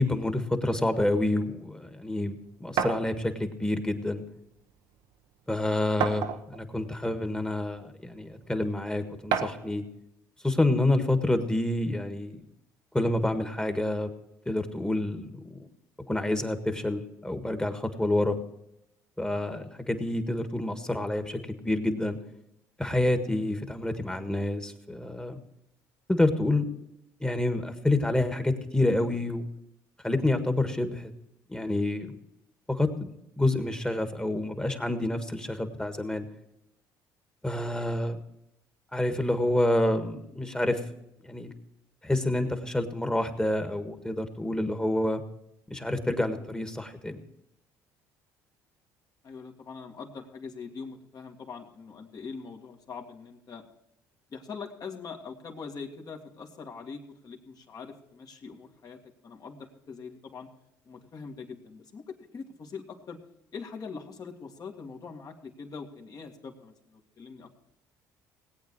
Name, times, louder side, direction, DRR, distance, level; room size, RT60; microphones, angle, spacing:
voice 1, 0.0-4.2 5.5-9.8 10.4-12.4 12.9-14.1 14.4-15.6 16.1-18.4 19.2-22.2 22.8-25.4 26.1-26.7 27.2-29.5 30.0-31.1 31.5-32.2 32.7-33.1 33.4-36.3 37.4-38.2 38.9-40.8 41.2-41.5 42.0-45.2 45.7-47.2, left 1 dB, 10° left, 7 dB, 1.6 m, -28 dB
sound 1, 2.8-3.1 4.2-4.3 4.7-4.8 6.0-6.6 7.5-7.6 9.3-9.7, right 8 dB, 75° right, 1.0 m, -29 dB
voice 2, 49.2-53.7 54.3-60.5 60.8-63.2 63.5-67.5, left 5 dB, 45° left, 3 dB, 2.0 m, -43 dB
18.5 x 8.5 x 4.8 m, 0.82 s
supercardioid pair, 70°, 9 cm